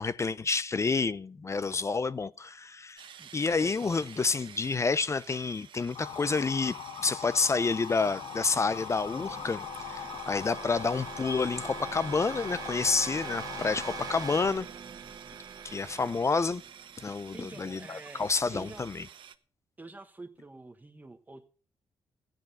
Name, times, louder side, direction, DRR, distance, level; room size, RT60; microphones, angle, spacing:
voice 1, 0.0-14.7 15.6-16.6 17.0-19.1, left 4 dB, 35° left, 0.6 m, -29 dB
sound 1, 3.0-19.4, right 8 dB, 65° right, 1.0 m, -51 dB
voice 2, 3.2-4.0 17.3-18.9 19.8-21.4, right 3 dB, 20° right, 1.2 m, -47 dB
Motor vehicle (road) / Siren, 5.9-14.5, left 8 dB, 75° left, 1.1 m, -41 dB
sound 2, 7.6-17.3, right 7 dB, 45° right, 1.9 m, -44 dB
13.5 x 10.0 x 5.4 m
cardioid pair, 70°, 9 cm